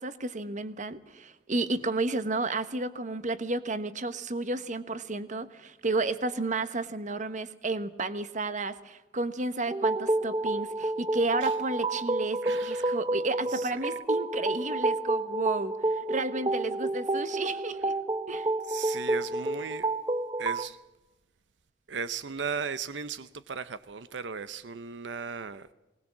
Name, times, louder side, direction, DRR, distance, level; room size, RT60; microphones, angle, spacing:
voice 1, 0.0-18.0 18.3-18.5, right 2 dB, 45° right, 1.2 m, -32 dB
sound 1, 9.7-20.7, right 2 dB, 25° right, 0.7 m, -30 dB
voice 2, 12.4-13.0 13.5-14.0 18.7-19.9 20.4-20.8 21.9-25.7, right 5 dB, 90° right, 0.7 m, -37 dB
20.5 x 19.5 x 7.4 m
head